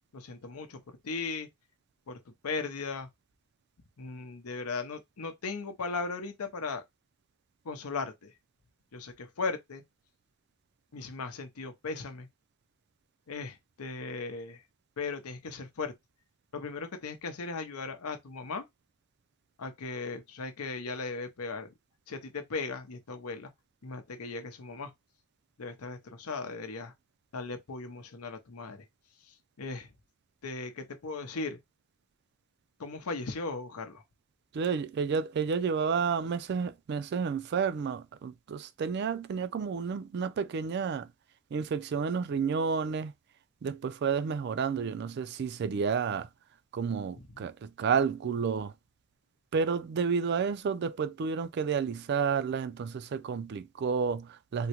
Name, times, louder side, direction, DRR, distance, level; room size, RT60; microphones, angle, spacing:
voice 1, 0.1-1.5 2.1-3.1 4.0-6.8 7.6-8.3 8.9-9.8 10.9-12.3 13.3-14.6 15.0-15.9 16.5-18.6 19.6-21.7 22.1-23.5 23.8-24.9 25.6-26.9 27.3-28.9 29.3-29.9 30.4-31.6 32.8-34.0 47.2-47.3, left 4 dB, 90° left, 0.7 m, -37 dB
voice 2, 34.5-41.1 41.5-43.1 43.6-46.3 46.7-48.7 49.5-54.7, right 6 dB, 50° right, 0.3 m, -30 dB
3.6 x 2.1 x 2.8 m
head